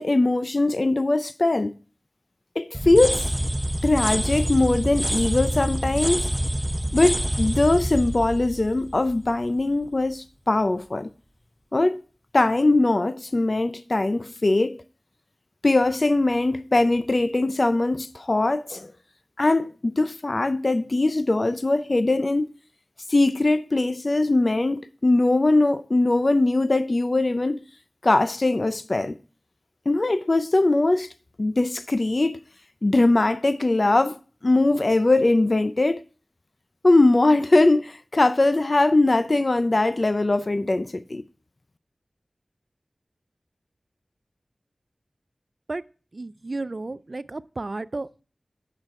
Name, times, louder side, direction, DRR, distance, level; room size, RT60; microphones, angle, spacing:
voice 1, 0.0-1.7 2.6-3.3 3.8-6.3 6.9-11.1 11.7-12.0 12.3-14.8 15.6-18.9 19.4-22.5 23.1-27.6 28.0-29.1 29.9-31.1 31.4-32.4 32.8-36.0 36.8-41.2, left 2 dB, 45° left, 0.5 m, -21 dB
sound 1, 2.7-9.6, right 1 dB, 10° right, 0.6 m, -27 dB
voice 2, 46.1-48.2, right 2 dB, 55° right, 0.4 m, -33 dB
8.9 x 5.8 x 4.8 m
wide cardioid pair, 55°, 0 cm